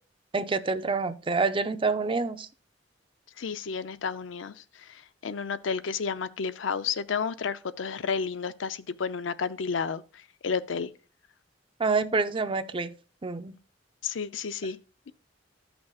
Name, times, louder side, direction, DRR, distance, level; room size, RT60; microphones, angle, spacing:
voice 1, 0.3-2.5 11.8-12.9 13.2-13.6, right 4 dB, 25° right, 0.5 m, -27 dB
voice 2, 3.4-10.9 14.0-14.8, left 5 dB, 85° left, 0.5 m, -32 dB
14.0 x 6.1 x 2.4 m
head